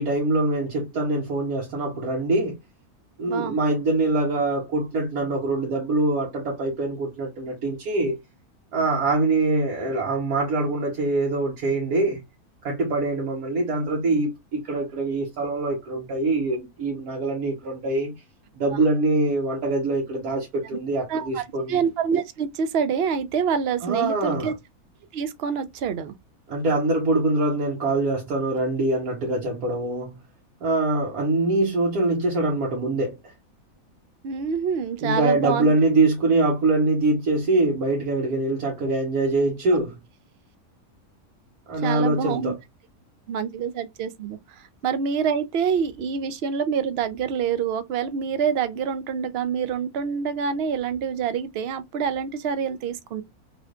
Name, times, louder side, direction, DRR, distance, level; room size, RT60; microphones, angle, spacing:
voice 1, 0.0-2.6 3.2-8.1 8.7-12.2 12.6-18.1 18.5-21.8 23.8-24.5 26.5-30.2 30.6-33.3 35.0-40.0 41.7-42.6, right 2 dB, 80° right, 1.5 m, -24 dB
voice 2, 21.1-24.5 25.1-26.1 34.2-35.7 41.8-42.5 43.3-53.2, right 7 dB, 65° right, 0.6 m, -26 dB
3.3 x 3.0 x 2.3 m
omnidirectional pair, 1.6 m